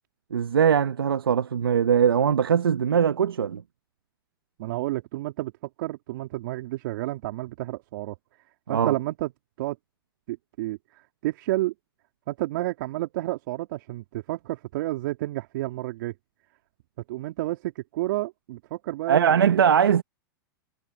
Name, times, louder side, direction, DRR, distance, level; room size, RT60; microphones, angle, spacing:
voice 1, 0.3-3.6 8.7-8.9 19.1-20.0, right 8 dB, 85° right, 1.3 m, -21 dB
voice 2, 4.6-5.5 5.8-8.1 8.7-9.3 9.6-9.8 10.3-11.7 12.3-16.1 17.1-19.6, right 17 dB, 60° right, 2.8 m, -30 dB
hypercardioid pair, 110°, 12 cm